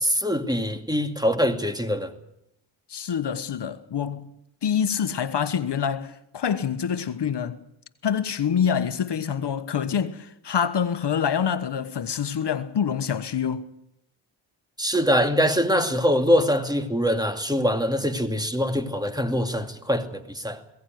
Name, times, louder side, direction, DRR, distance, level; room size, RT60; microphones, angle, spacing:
voice 1, 0.0-2.1 14.8-20.6, equal, 10° right, 2.5 m, -23 dB
voice 2, 2.9-4.3 4.6-7.6 8.0-13.6, left 7 dB, 60° left, 1.3 m, -26 dB
20.5 x 17.5 x 9.4 m
cardioid pair, 70°, 47 cm